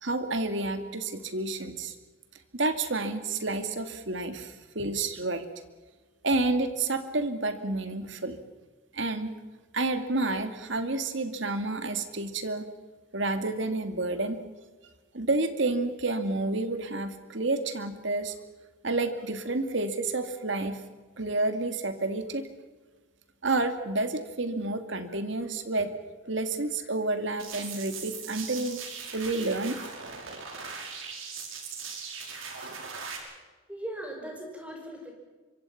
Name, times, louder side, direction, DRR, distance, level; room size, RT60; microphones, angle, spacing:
voice 1, 0.0-2.0 2.5-5.4 6.2-8.4 8.9-9.3 9.7-12.7 13.1-14.4 15.1-18.4 18.8-20.8 21.2-22.5 23.4-25.9 26.3-28.8 29.1-29.8, right 2 dB, 65° right, 8 dB, 2.3 m, -29 dB
sound 1, 27.4-33.2, right 5 dB, 85° right, 5.6 m, -39 dB
voice 2, 33.7-35.1, right 1 dB, 5° right, 2 dB, 5.5 m, -39 dB
26.0 x 24.5 x 5.9 m, 1.3 s
head